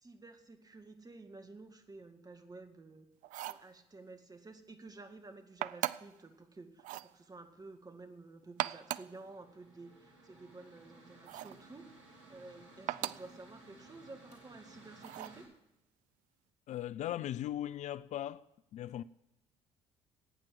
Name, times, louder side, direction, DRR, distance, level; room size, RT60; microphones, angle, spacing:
voice 1, 0.0-3.1 3.5-6.8 7.1-11.8 12.3-15.5, right 3 dB, 25° right, 1.9 m, -52 dB
sound 1, 3.2-3.7 5.6-6.2 6.8-7.1 8.4-9.2 11.3-11.6 12.9-13.3 15.0-15.4, right 15 dB, 60° right, 0.4 m, -38 dB
Mechanical fan, 8.4-15.4, right 2 dB, 85° right, 3.0 m, -58 dB
voice 2, 16.7-18.4 18.7-19.0, left 12 dB, 50° left, 0.4 m, -38 dB
12.5 x 8.9 x 7.4 m
hypercardioid pair, 50°, 15 cm